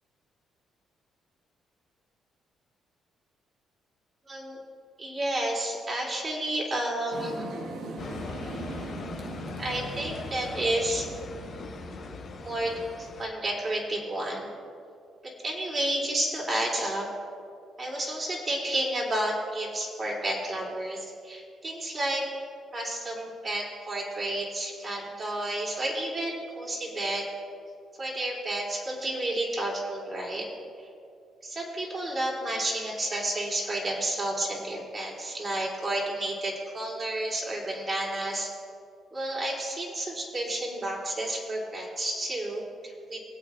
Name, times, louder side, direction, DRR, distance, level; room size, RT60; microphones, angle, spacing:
voice 1, 4.3-4.6 5.0-7.5 9.6-11.1 12.4-14.5 15.2-17.1 17.8-22.3 22.7-27.3 28.0-30.5 31.4-38.5 39.1-43.2, right 1 dB, 35° right, -2 dB, 3.2 m, -31 dB
sound 1, 7.1-13.1, right 2 dB, 80° right, 1.2 m, -40 dB
sound 2, 8.0-13.3, left 5 dB, 50° left, 0.9 m, -41 dB
23.0 x 8.2 x 2.5 m, 2.4 s
cardioid pair, 90°, 0 cm